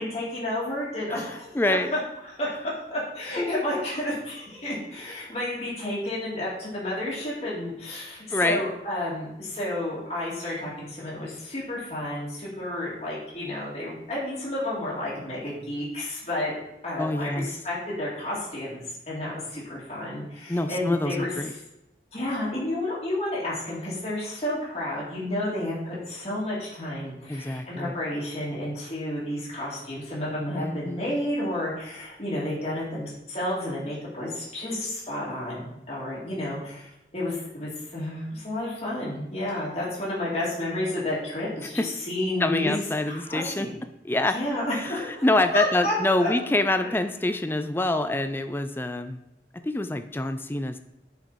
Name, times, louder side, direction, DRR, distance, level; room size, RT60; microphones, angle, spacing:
voice 1, 0.0-2.5 2.9-16.5 16.8-21.3 22.1-43.7 44.3-45.2 45.5-46.3 46.8-46.9, left 1 dB, 35° left, -7 dB, 2.3 m, -31 dB
voice 2, 1.5-1.9 3.4-3.5 8.3-8.6 17.0-17.5 20.5-21.5 27.3-27.9 30.6-31.0 41.8-41.9 42.4-43.7 44.0-44.4 44.7-44.9 45.2-49.2 49.6-50.8, left 2 dB, 10° left, 9 dB, 0.4 m, -26 dB
8.9 x 5.8 x 4.1 m, 0.89 s
head